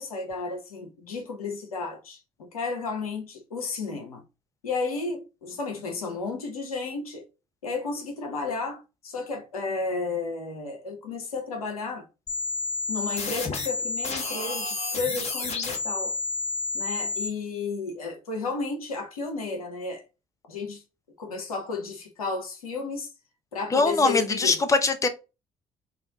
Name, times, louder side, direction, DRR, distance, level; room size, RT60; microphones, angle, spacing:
voice 1, 0.0-4.2 4.6-7.2 7.6-12.0 12.9-16.1 16.7-20.0 20.5-20.8 21.2-23.1 23.5-24.6, left 4 dB, 85° left, 0.7 m, -33 dB
sound 1, 12.3-17.3, left 3 dB, 40° left, 1.1 m, -30 dB
voice 2, 23.7-25.1, left 3 dB, 20° left, 0.6 m, -22 dB
4.1 x 2.3 x 2.7 m
figure-of-eight pair, 50°, 18 cm